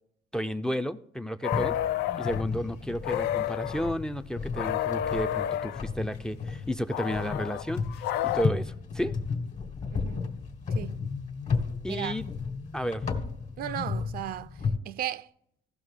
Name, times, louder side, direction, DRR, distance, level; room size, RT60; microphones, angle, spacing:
voice 1, 0.3-1.8 2.2-8.0 8.3-9.2 11.8-12.3 12.7-13.0, equal, 5° left, 0.4 m, -32 dB
sound 1, 1.4-2.4 3.0-3.9 4.5-5.8 6.9-8.4, left 12 dB, 75° left, 0.4 m, -30 dB
sound 2, 1.5-14.8, left 5 dB, 45° left, 1.5 m, -34 dB
voice 2, 9.9-10.3 10.7-11.0 11.9-12.2 13.6-14.6 14.9-15.3, right 12 dB, 60° right, 0.4 m, -35 dB
16.0 x 6.0 x 3.6 m
cardioid pair, 110°, 17 cm